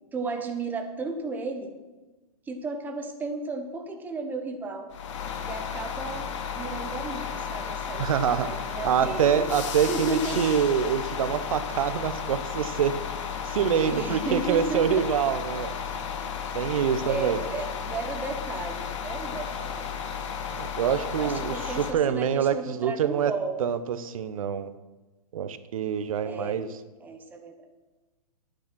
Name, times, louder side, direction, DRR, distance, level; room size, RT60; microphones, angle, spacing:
voice 1, 0.1-1.7 2.5-4.9 5.4-9.5 9.9-10.4 13.7-15.0 16.6-16.7 17.0-19.9 21.2-23.6 26.3-26.6 27.0-27.5, right 3 dB, 10° right, 4 dB, 0.9 m, -34 dB
sound 1, 4.9-21.9, left 7 dB, 50° left, 1.5 m, -33 dB
voice 2, 8.0-8.5 8.8-13.0 13.4-15.8 16.5-17.4 20.5-23.3 23.6-24.7 25.3-26.7, right 8 dB, 60° right, 13 dB, 0.9 m, -26 dB
10.5 x 8.9 x 6.1 m, 1.2 s
hypercardioid pair, 140°, 20 cm